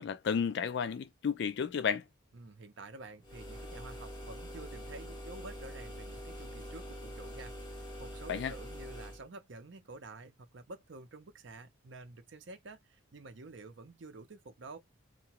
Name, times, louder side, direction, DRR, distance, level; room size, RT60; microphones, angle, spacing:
voice 1, 0.0-2.0 8.3-8.5, left 6 dB, 55° left, 0.3 m, -32 dB
voice 2, 2.3-14.8, right 3 dB, 60° right, 0.6 m, -50 dB
sound 1, 3.2-9.2, equal, 20° left, 0.7 m, -45 dB
2.8 x 2.2 x 2.9 m
head